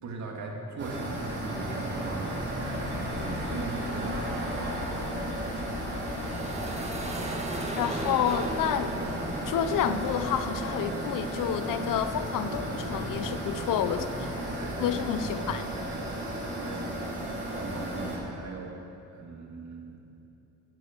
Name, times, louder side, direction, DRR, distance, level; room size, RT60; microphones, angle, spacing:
voice 1, 0.0-5.1 13.9-14.2 14.6-16.0 16.6-16.9 17.6-18.8 19.1-20.0, right 3 dB, 60° right, 0 dB, 2.5 m, -39 dB
sound 1, 0.8-18.2, right 1 dB, 35° right, 4.0 m, -34 dB
sound 2, 2.6-10.5, left 7 dB, 40° left, 0.7 m, -42 dB
sound 3, 6.1-13.9, right 2 dB, 20° right, 1.5 m, -38 dB
voice 2, 7.8-8.9 9.5-14.0 14.8-15.6, left 9 dB, 85° left, 10 dB, 0.8 m, -29 dB
15.5 x 11.0 x 6.1 m, 2.8 s
cardioid pair, 105°, 32 cm